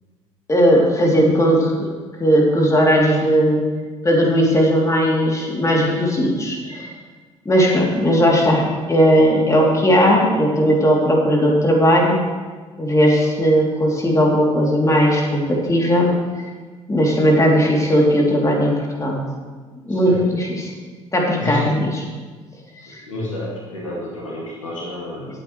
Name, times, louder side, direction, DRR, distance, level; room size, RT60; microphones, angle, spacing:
voice 1, 0.5-1.9 2.2-3.6 4.0-6.9 7.4-12.2 12.8-16.1 16.9-19.2 19.8-20.7 21.1-22.0 22.9-23.0, equal, 20° left, -1 dB, 2.9 m, -17 dB
voice 2, 23.1-25.3, left 1 dB, 85° left, -4 dB, 2.0 m, -30 dB
18.5 x 8.5 x 3.2 m, 1.4 s
figure-of-eight pair, 50°, 16 cm